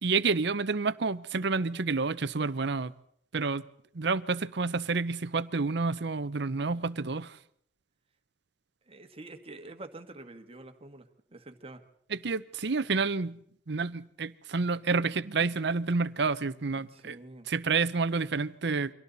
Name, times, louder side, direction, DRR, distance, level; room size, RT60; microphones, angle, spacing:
voice 1, 0.0-2.9 3.3-3.6 3.9-7.4 12.1-13.4 13.7-17.2 17.5-18.9, right 4 dB, 70° right, 15 dB, 0.8 m, -29 dB
voice 2, 8.9-11.8 16.7-17.5, right 2 dB, 35° right, 8 dB, 1.7 m, -47 dB
29.5 x 24.5 x 4.1 m, 0.66 s
head